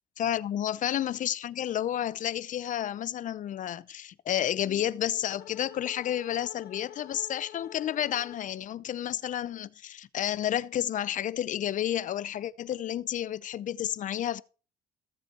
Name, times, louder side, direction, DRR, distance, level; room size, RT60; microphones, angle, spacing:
voice 1, 0.2-14.4, left 11 dB, 50° left, 0.6 m, -31 dB
sound 1, 4.5-8.7, left 12 dB, 70° left, 1.5 m, -48 dB
16.0 x 7.4 x 4.3 m
cardioid pair, 110°, 17 cm